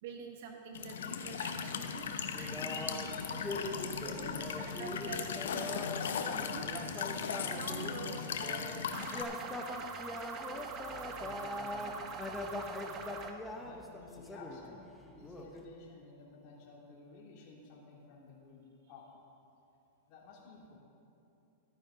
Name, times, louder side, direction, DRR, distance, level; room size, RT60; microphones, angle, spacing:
voice 1, 0.0-5.9 6.5-7.0 7.5-9.9, right 5 dB, 60° right, 4 dB, 0.8 m, -48 dB
Walk footsteps / Chirp tweet / Stream, 0.7-9.2, left 6 dB, 85° left, 0.8 m, -37 dB
sound 1, 2.3-6.0 6.4-8.8 9.1-15.7, left 2 dB, 5° left, 0.9 m, -43 dB
sound 2, 8.9-13.3, right 5 dB, 30° right, 0.8 m, -44 dB
voice 2, 10.8-11.9 13.6-19.1 20.1-20.8, left 4 dB, 45° left, -4 dB, 2.6 m, -54 dB
13.0 x 9.5 x 3.9 m, 2.7 s
supercardioid pair, 140°, 0 cm